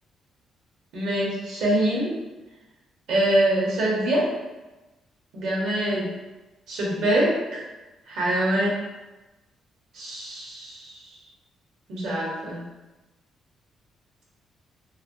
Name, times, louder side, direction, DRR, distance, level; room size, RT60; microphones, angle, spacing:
voice 1, 0.9-2.1 3.1-4.3 5.3-6.1 6.7-7.6 8.1-8.7 9.9-10.9 11.9-12.6, right 1 dB, 80° right, -4 dB, 0.9 m, -24 dB
3.1 x 2.0 x 2.5 m, 1.1 s
cardioid pair, 90°, 0 cm